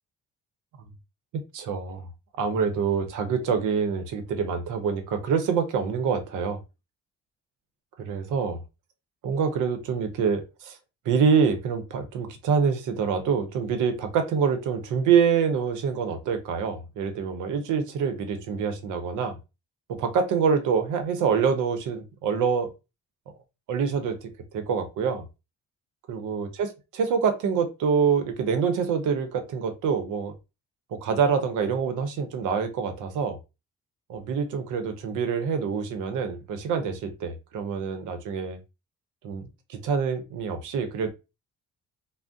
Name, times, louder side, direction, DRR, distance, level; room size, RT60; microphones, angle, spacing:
voice 1, 1.5-2.0 2.4-6.6 8.0-8.6 9.2-10.8 11.1-19.4 19.9-22.7 23.7-25.2 26.1-30.3 30.9-33.4 34.1-38.6 39.2-41.1, right 6 dB, 85° right, 0.7 m, -26 dB
2.5 x 2.1 x 3.5 m
cardioid pair, 90°, 30 cm